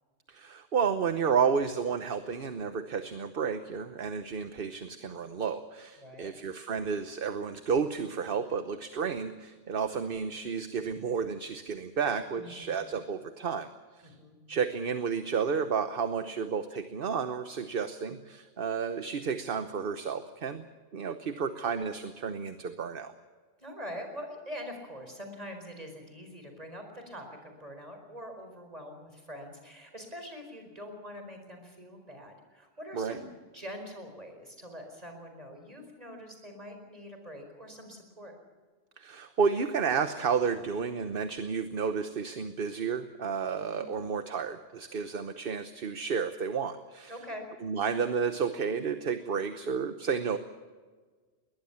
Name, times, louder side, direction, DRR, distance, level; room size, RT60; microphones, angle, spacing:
voice 1, 0.3-13.7 14.0-14.1 14.5-20.6 20.9-23.1 32.9-33.2 39.0-47.1 47.6-50.4, right 6 dB, 60° right, 10 dB, 1.1 m, -31 dB
voice 2, 6.0-6.3 12.3-12.8 14.0-14.4 23.6-38.4 43.5-44.0 47.1-47.5, equal, 35° right, 5 dB, 4.7 m, -44 dB
21.5 x 19.5 x 7.1 m, 1.4 s
omnidirectional pair, 1.1 m